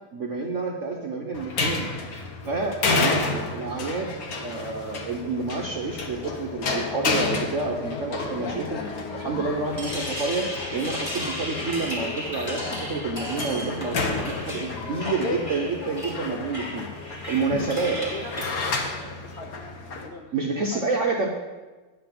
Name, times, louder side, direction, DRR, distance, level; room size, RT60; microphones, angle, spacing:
voice 1, 0.1-1.9 2.4-4.1 4.4-8.8 9.1-10.5 10.7-18.0 20.3-21.3, right 4 dB, 60° right, 0 dB, 0.8 m, -29 dB
sound 1, 1.3-20.1, left 3 dB, 50° left, 1.2 m, -31 dB
sound 2, 5.1-19.4, left 10 dB, 85° left, 1.6 m, -42 dB
sound 3, 9.5-18.5, left 1 dB, 20° left, 1.3 m, -35 dB
voice 2, 17.5-18.3 18.8-19.6 19.9-20.9, left 3 dB, 70° left, 2 dB, 0.6 m, -41 dB
9.6 x 5.7 x 7.6 m, 1.2 s
omnidirectional pair, 2.4 m